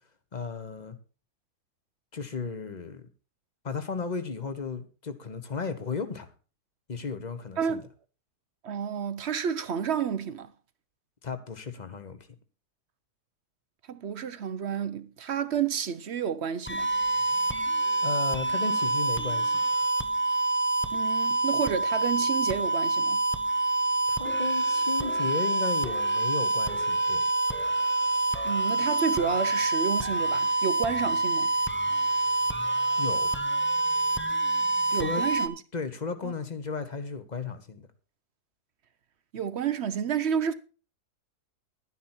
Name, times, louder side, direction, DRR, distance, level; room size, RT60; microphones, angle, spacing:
voice 1, 0.3-1.0 2.1-3.0 3.6-6.3 6.9-7.8 11.2-12.2 18.0-19.6 24.1-27.2 33.0-33.3 34.9-35.2 35.7-37.9, left 4 dB, 30° left, 1.1 m, -34 dB
voice 2, 7.6-7.9 8.6-10.5 13.9-16.9 20.9-23.3 28.4-31.5 34.9-35.5 36.2-36.3 39.3-40.5, right 7 dB, 60° right, 0.8 m, -30 dB
sound 1, 16.7-35.5, right 2 dB, 15° left, 0.4 m, -26 dB
11.5 x 9.8 x 4.4 m
omnidirectional pair, 1.7 m